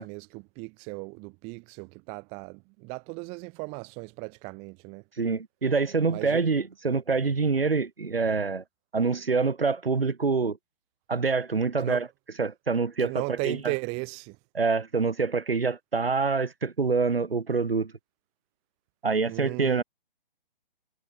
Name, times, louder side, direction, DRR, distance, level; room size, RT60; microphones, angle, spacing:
voice 1, 0.0-5.0 6.1-6.4 11.8-12.0 13.0-14.4 19.3-19.8, right 32 dB, 20° right, 1.7 m, -36 dB
voice 2, 5.2-8.6 8.9-10.6 11.1-12.1 12.4-13.6 14.5-17.9 19.0-19.8, right 4 dB, 80° right, 6.5 m, -26 dB
figure-of-eight pair, 140°, 29 cm